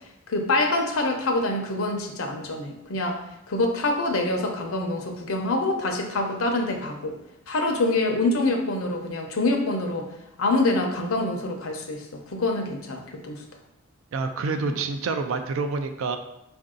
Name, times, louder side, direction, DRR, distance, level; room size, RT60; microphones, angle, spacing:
voice 1, 0.3-3.2 3.5-7.1 7.5-10.1 10.4-12.0 12.3-13.4 14.6-14.7, left 2 dB, 85° left, 3 dB, 0.7 m, -25 dB
voice 2, 14.1-16.2, right 4 dB, 75° right, 7 dB, 0.4 m, -27 dB
4.7 x 2.6 x 3.7 m, 0.85 s
head